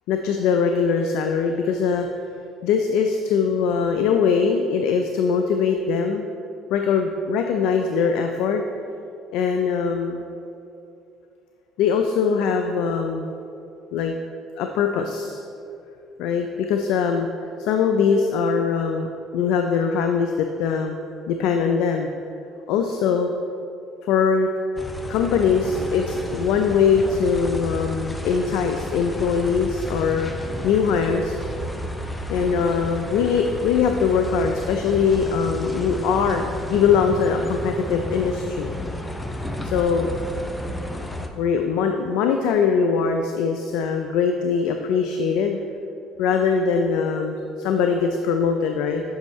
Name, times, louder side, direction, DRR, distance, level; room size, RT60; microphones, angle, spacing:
voice 1, 0.1-2.1 2.6-6.3 6.7-8.6 9.3-10.2 11.8-13.3 13.9-14.1 14.6-15.4 16.2-17.3 17.6-19.1 19.3-21.0 21.3-22.1 22.7-23.3 24.0-24.5 25.1-30.3 30.6-31.4 32.3-38.7 39.7-40.1 41.4-45.6 46.2-49.0, left 6 dB, 75° left, 5 dB, 0.3 m, -22 dB
sound 1, 24.8-41.3, left 1 dB, 15° left, 0.5 m, -32 dB
7.1 x 5.2 x 3.1 m, 2.6 s
supercardioid pair, 80°, 0 cm